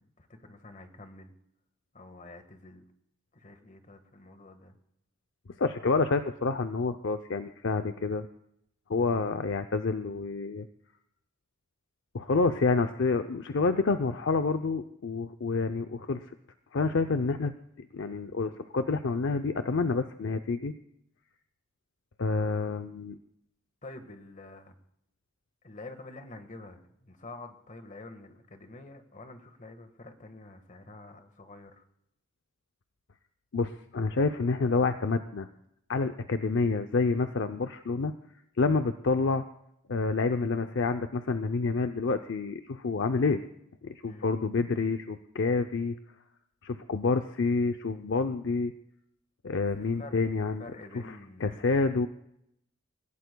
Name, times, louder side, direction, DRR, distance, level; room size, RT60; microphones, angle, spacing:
voice 1, 0.0-1.3 1.9-2.8 3.3-4.7 23.8-24.7 25.6-31.8 44.0-44.4 49.7-50.2 50.6-51.7, left 2 dB, 40° left, 7 dB, 1.5 m, -48 dB
voice 2, 5.6-8.3 8.9-10.7 12.1-16.2 16.7-17.5 17.8-20.7 22.2-23.2 33.5-35.5 35.9-38.1 38.6-39.4 39.9-43.4 43.8-46.0 46.6-48.7 49.4-50.6 51.4-52.1, left 4 dB, 60° left, 9 dB, 0.6 m, -28 dB
28.5 x 16.0 x 2.3 m, 0.76 s
head